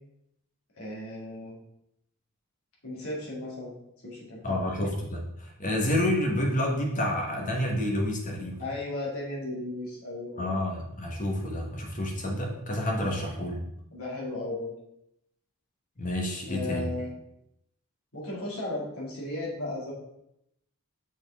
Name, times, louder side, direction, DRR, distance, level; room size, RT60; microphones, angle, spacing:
voice 1, 0.8-1.5 2.8-3.7 4.0-4.6 8.6-10.5 13.0-13.1 13.9-14.7 16.5-17.1 18.1-19.9, left 2 dB, 65° left, -4 dB, 2.1 m, -35 dB
voice 2, 4.4-8.7 10.4-13.6 16.0-16.9, left 1 dB, 35° left, 1 dB, 1.1 m, -29 dB
6.3 x 4.3 x 3.5 m, 0.81 s
head